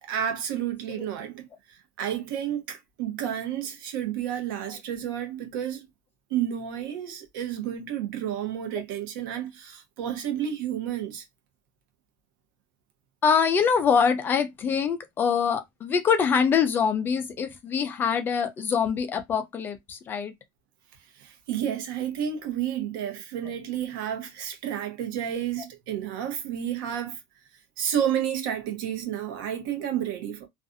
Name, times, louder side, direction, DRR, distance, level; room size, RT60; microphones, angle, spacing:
voice 1, 0.0-5.9 6.3-11.2 21.2-27.2 27.8-30.5, right 10 dB, 85° right, 0.9 m, -31 dB
voice 2, 13.2-20.3, left 6 dB, 20° left, 0.3 m, -24 dB
2.5 x 2.4 x 2.5 m
cardioid pair, 175°, 11 cm